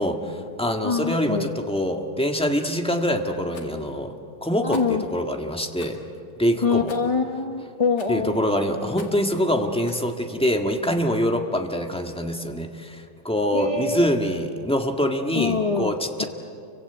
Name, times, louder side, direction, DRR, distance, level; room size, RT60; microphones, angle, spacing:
voice 1, 0.0-4.1 4.4-4.8 5.1-6.0 6.4-6.9 8.1-16.2, equal, 5° left, 3 dB, 1.4 m, -24 dB
voice 2, 0.8-1.5 4.6-5.0 6.6-8.4 13.5-14.1 15.3-15.9 16.2-16.3, left 5 dB, 45° left, 5 dB, 0.4 m, -24 dB
Rattle, 2.3-2.6 3.5-3.8 4.7-5.0 5.8-6.0 6.9-7.2 8.0-8.3 8.9-9.3 9.8-10.1, left 4 dB, 75° left, 3.0 m, -46 dB
29.0 x 24.5 x 8.2 m, 2.5 s
omnidirectional pair, 2.1 m